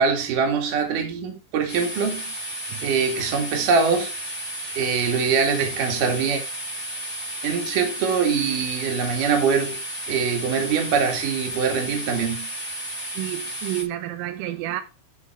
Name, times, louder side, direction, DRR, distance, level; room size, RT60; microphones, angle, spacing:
voice 1, 0.0-2.3 2.8-4.1 4.7-6.4 7.4-9.8 10.1-12.5, right 5 dB, 50° right, 3.2 m, -23 dB
sound 1, 1.7-13.8, equal, 40° left, 3.9 m, -33 dB
voice 2, 13.2-14.8, right 14 dB, 85° right, 3.4 m, -30 dB
12.5 x 5.8 x 3.4 m
omnidirectional pair, 5.9 m